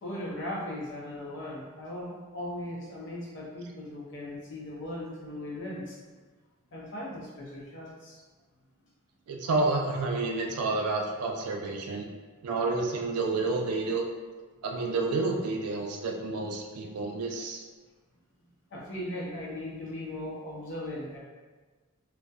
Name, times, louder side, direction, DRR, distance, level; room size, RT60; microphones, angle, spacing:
voice 1, 0.0-6.0 6.7-8.2 18.7-21.2, left 1 dB, 55° left, -4 dB, 0.6 m, -38 dB
voice 2, 9.3-12.1 12.4-14.0 14.6-17.6, right 3 dB, 85° right, 1 dB, 0.4 m, -29 dB
2.6 x 2.1 x 2.2 m, 1.4 s
head